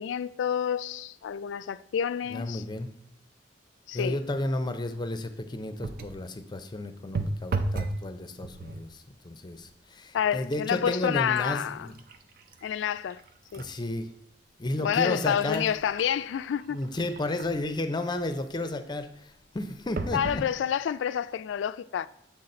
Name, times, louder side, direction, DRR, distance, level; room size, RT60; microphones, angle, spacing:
voice 1, 0.0-2.6 3.9-4.2 10.1-11.9 12.6-13.2 13.5-13.6 14.8-16.8 20.1-22.1, left 8 dB, 85° left, 0.3 m, -28 dB
voice 2, 2.3-2.9 3.9-11.9 13.6-14.1 14.6-15.7 16.7-20.4, left 2 dB, 25° left, 0.5 m, -32 dB
sound 1, 5.8-6.3 7.1-8.0 8.4-8.9 9.6-9.8 10.2-13.7 14.2-14.3 15.0-17.7 20.0-20.5 21.2-21.3 21.5-21.6, right 3 dB, 55° right, 0.5 m, -36 dB
7.2 x 4.0 x 4.3 m
head